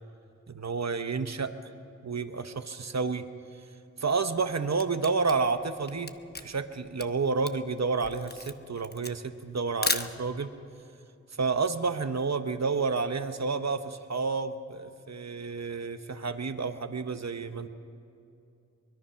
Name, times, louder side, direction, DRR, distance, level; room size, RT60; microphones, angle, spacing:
voice 1, 0.5-1.7 2.0-3.2 4.0-6.1 6.4-10.5 11.4-13.8 14.1-17.7, right 4 dB, 60° right, 9 dB, 1.0 m, -30 dB
Camera, 4.3-10.6, left 3 dB, 35° left, 0.9 m, -35 dB
23.5 x 21.0 x 5.8 m, 2.6 s
wide cardioid pair, 45°, 30 cm